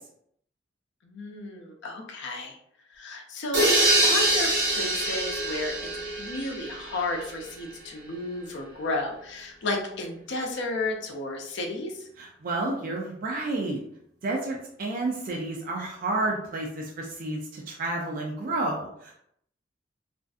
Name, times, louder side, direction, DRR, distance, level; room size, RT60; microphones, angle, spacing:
voice 1, 1.0-2.6 2.9-3.7 4.0-5.9 6.2-12.1, left 2 dB, 65° left, 2 dB, 0.5 m, -33 dB
sound 1, 3.5-7.3, right 1 dB, 65° right, 1.3 m, -24 dB
voice 2, 12.2-13.8 14.2-19.2, right 2 dB, 45° right, -1 dB, 0.4 m, -30 dB
2.5 x 2.4 x 2.3 m, 0.71 s
head